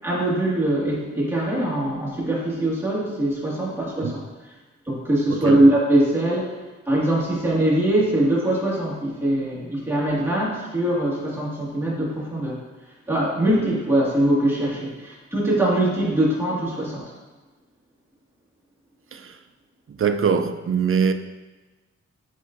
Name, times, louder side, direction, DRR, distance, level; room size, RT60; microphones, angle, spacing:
voice 1, 0.0-4.2 4.9-6.6 6.9-12.6 13.1-17.1, right 1 dB, 10° right, 1.8 m, -22 dB
voice 2, 5.3-5.6 19.1-19.3 20.0-21.1, right 6 dB, 45° right, 0.4 m, -22 dB
8.3 x 5.2 x 2.5 m
wide cardioid pair, 100°, 30 cm